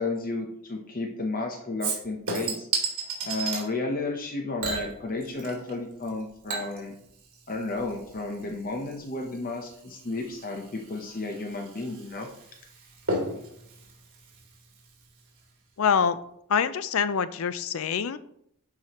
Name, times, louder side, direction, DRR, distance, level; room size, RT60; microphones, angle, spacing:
voice 1, 0.0-2.7 3.2-6.9 7.5-12.3, left 3 dB, 40° left, 2 dB, 0.9 m, -32 dB
Chink clink / Liquid, 1.8-3.7 4.6-5.8 6.0-15.1 15.4-15.5, right 3 dB, 60° right, 2.5 m, -35 dB
voice 2, 15.8-16.2 16.5-18.2, left 6 dB, 65° left, 14 dB, 0.4 m, -25 dB
11.5 x 4.8 x 3.0 m, 0.73 s
head